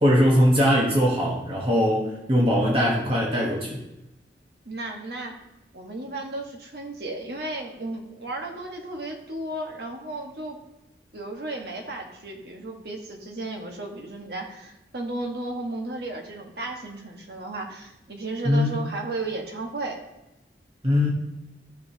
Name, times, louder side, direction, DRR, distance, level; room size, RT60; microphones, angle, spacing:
voice 1, 0.0-3.9 18.4-18.8 20.8-21.1, equal, 30° right, -3 dB, 1.2 m, -21 dB
voice 2, 4.6-5.4 5.7-10.6 11.1-20.0, right 2 dB, 65° right, 1 dB, 1.4 m, -34 dB
12.5 x 6.2 x 2.8 m, 0.96 s
head